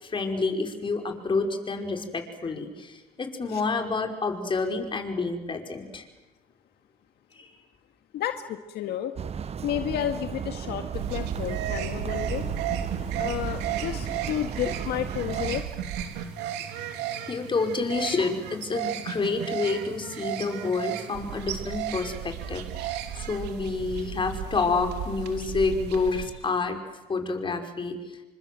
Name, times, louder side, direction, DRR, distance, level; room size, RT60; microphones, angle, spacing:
voice 1, 0.0-6.1 7.3-7.5 17.3-26.8 27.1-28.2, left 4 dB, 30° left, 4 dB, 5.3 m, -29 dB
voice 2, 8.1-9.1 9.6-12.4 13.2-15.7, left 11 dB, 75° left, 7 dB, 1.9 m, -31 dB
sound 1, 9.2-15.6, right 7 dB, 40° right, 1.0 m, -35 dB
sound 2, 10.9-26.3, right 10 dB, 90° right, 3.3 m, -34 dB
29.0 x 25.5 x 7.8 m, 1.1 s
cardioid pair, 110°, 17 cm